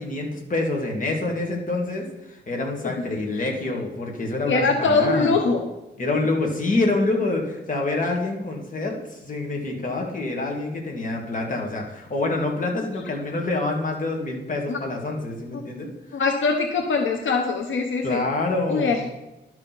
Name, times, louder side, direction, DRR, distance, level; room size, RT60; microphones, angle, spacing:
voice 1, 0.0-5.3 6.0-15.9 18.0-19.1, left 2 dB, 40° left, 0 dB, 2.1 m, -26 dB
voice 2, 4.5-5.7 14.7-14.8 15.5-15.6 16.1-18.3 18.7-19.0, left 4 dB, 80° left, 3 dB, 0.9 m, -22 dB
11.5 x 6.3 x 4.1 m, 0.99 s
wide cardioid pair, 115°, 20 cm